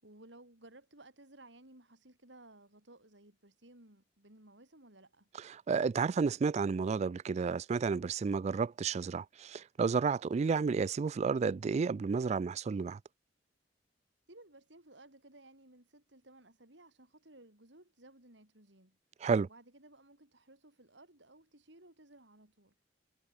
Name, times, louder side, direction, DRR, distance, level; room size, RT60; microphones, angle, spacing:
voice 1, 0.0-5.3 14.3-19.0 19.4-22.7, right 2 dB, 75° right, 6.2 m, -58 dB
voice 2, 5.4-13.0 19.2-19.5, right 5 dB, 35° right, 0.3 m, -31 dB
head